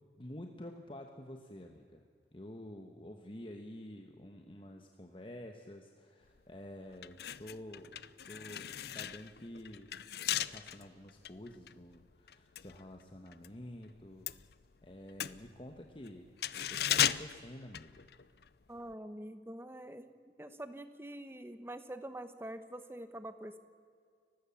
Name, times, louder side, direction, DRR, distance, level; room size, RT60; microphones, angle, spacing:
voice 1, 0.1-2.0 2.3-8.0 8.3-9.9 10.4-14.3 14.8-16.3 16.7-18.0, left 1 dB, 30° left, 3 dB, 1.2 m, -49 dB
sound 1, 6.3-6.5 6.9-13.6 13.8-18.5 18.8-18.9, left 10 dB, 60° left, 0.6 m, -37 dB
voice 2, 18.7-20.1 20.4-23.6, right 1 dB, 15° right, 10 dB, 1.1 m, -45 dB
30.0 x 16.0 x 7.2 m, 2.2 s
head